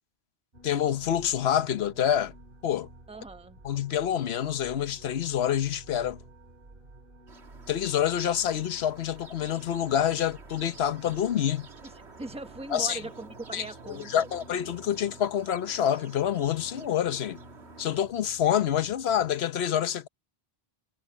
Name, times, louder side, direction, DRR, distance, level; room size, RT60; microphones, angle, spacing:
sound 1, 0.5-19.4, right 1 dB, 55° right, 2.5 m, -52 dB
voice 1, 0.6-2.3 2.6-2.9 3.6-6.2 7.7-11.7 12.7-13.0 13.5-17.4 17.8-20.1, left 10 dB, 75° left, 1.1 m, -27 dB
voice 2, 3.1-3.6 11.8-14.3, right 3 dB, 5° right, 1.1 m, -40 dB
sound 2, 7.3-18.0, right 4 dB, 85° right, 2.1 m, -51 dB
omnidirectional pair, 1.1 m